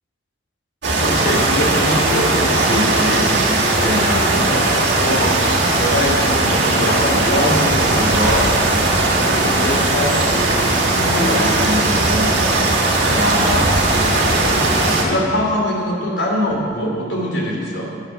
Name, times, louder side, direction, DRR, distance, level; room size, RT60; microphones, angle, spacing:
sound 1, 0.8-15.0, right 2 dB, 80° right, 2.0 m, -17 dB
voice 1, 1.0-3.4 3.8-5.4 5.8-8.6 9.0-17.8, left 1 dB, 90° left, -2 dB, 2.8 m, -23 dB
11.5 x 5.8 x 7.3 m, 2.3 s
head